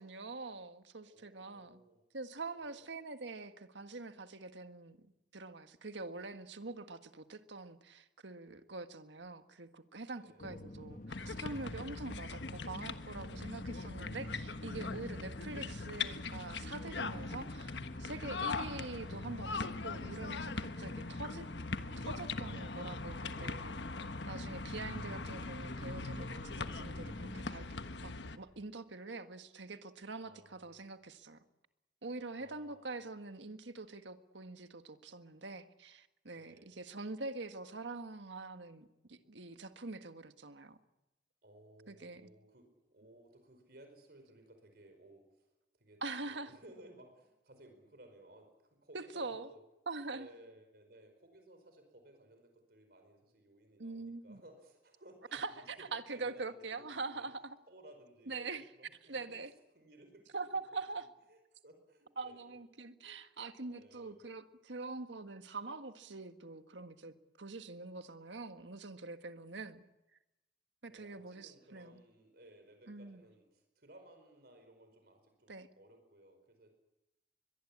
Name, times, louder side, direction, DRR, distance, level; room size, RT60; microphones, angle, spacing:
voice 1, 0.0-1.8 2.1-5.0 5.3-21.5 22.0-23.8 24.2-27.6 28.0-31.4 32.0-40.8 41.9-42.3 46.0-46.5 48.9-49.5 49.9-50.3 53.8-54.4 55.3-57.6 58.3-58.7 59.1-59.5 60.3-61.1 62.2-69.8 70.8-72.0 72.9-73.2 75.5-75.7, right 3 dB, 85° right, 9 dB, 1.7 m, -44 dB
voice 2, 1.0-2.0 2.5-2.9 10.2-10.5 11.8-12.2 27.3-27.7 30.2-30.8 32.3-33.0 36.3-36.7 41.4-49.6 50.1-57.3 57.7-60.6 61.0-62.6 63.7-64.2 70.9-76.7, right 1 dB, 60° right, 6 dB, 5.0 m, -60 dB
sound 1, 10.4-27.4, left 1 dB, 45° left, 1.5 m, -47 dB
sound 2, 11.1-28.4, left 4 dB, 80° left, 1.3 m, -42 dB
23.0 x 22.0 x 8.7 m, 0.95 s
head